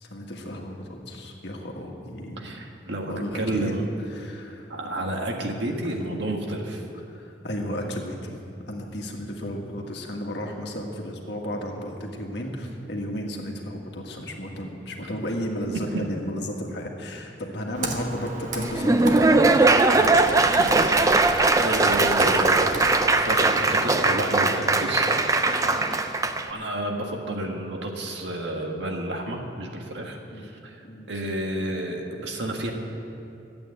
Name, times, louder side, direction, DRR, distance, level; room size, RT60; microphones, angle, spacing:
voice 1, 0.0-2.6 3.1-3.7 4.1-4.7 5.8-5.9 7.1-8.4 8.7-19.7 20.0-21.2 25.7-25.9 26.5-26.8 30.3-30.5 30.8-31.1, equal, 65° left, 1 dB, 1.7 m, -34 dB
voice 2, 2.4-3.8 4.7-6.8 20.0-20.2 20.9-25.8 26.5-30.8 31.1-32.7, right 1 dB, 70° right, 1 dB, 1.7 m, -31 dB
Computer keyboard, 17.8-23.7, right 2 dB, 40° right, 1.3 m, -35 dB
Laughter / Applause, 18.6-26.5, right 3 dB, 15° right, 0.4 m, -20 dB
sound 1, 20.9-26.2, equal, ahead, 1.3 m, -41 dB
13.0 x 8.7 x 8.4 m, 2.7 s
head